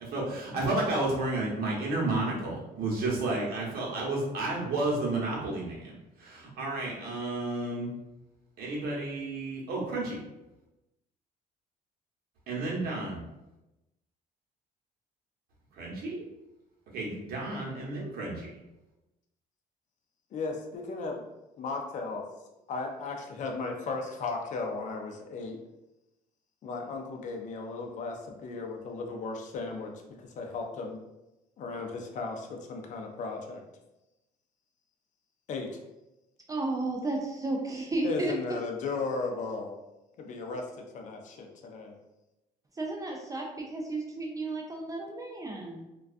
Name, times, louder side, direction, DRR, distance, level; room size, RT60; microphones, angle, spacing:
voice 1, 0.1-5.9 6.2-7.9 8.6-10.2 12.5-13.2 15.8-16.2 16.9-18.5, right 2 dB, 65° right, -4 dB, 0.9 m, -31 dB
voice 2, 20.3-21.2 21.6-22.3 22.7-25.6 26.6-29.9 30.2-31.0 31.6-33.6 35.5-35.8 38.0-39.8 40.2-41.9, left 3 dB, 50° left, 2 dB, 0.4 m, -36 dB
voice 3, 36.5-38.3 42.8-45.9, right 2 dB, 20° right, 0 dB, 0.4 m, -33 dB
2.3 x 2.3 x 2.4 m, 0.97 s
cardioid pair, 110°, 17 cm